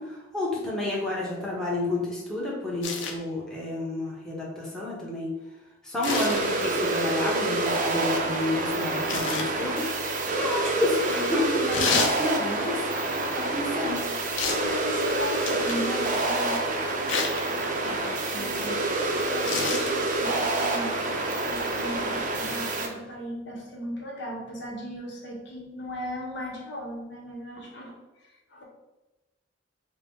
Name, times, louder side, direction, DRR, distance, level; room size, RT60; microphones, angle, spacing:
voice 1, 0.0-5.3 5.8-12.8 13.4-14.1 17.8-18.0 18.3-18.8, left 2 dB, 5° left, -6 dB, 0.9 m, -30 dB
sound 1, 2.8-3.2 6.0-6.5 9.1-9.5 11.7-12.2 14.4-14.7 15.4-15.9 17.1-17.4 19.4-19.9 21.3-21.4, left 5 dB, 85° left, 0.5 m, -29 dB
sound 2, 6.1-22.9, right 2 dB, 45° right, 0.5 m, -27 dB
voice 2, 14.4-16.6 18.2-18.6 19.1-20.9 21.4-27.9 28.2-28.6, equal, 65° left, -2 dB, 0.9 m, -37 dB
4.5 x 2.1 x 3.5 m, 1.1 s
head